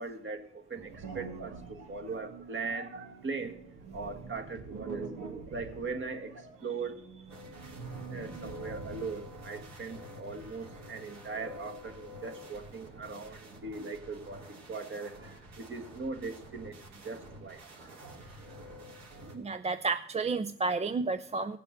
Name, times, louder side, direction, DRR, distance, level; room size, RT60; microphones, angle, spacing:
voice 1, 0.0-3.6 3.9-5.0 5.5-6.3 6.6-7.0 8.1-14.4 14.7-17.9 18.5-18.6, right 4 dB, 40° right, 6 dB, 1.6 m, -40 dB
sound 1, 0.7-9.2, right 4 dB, 85° right, 2.1 m, -45 dB
sound 2, 7.3-19.3, left 1 dB, 60° right, 3.1 m, -49 dB
voice 2, 19.3-21.6, right 4 dB, 20° right, 10 dB, 0.5 m, -31 dB
16.5 x 6.8 x 6.6 m, 0.69 s
cardioid pair, 90°, 30 cm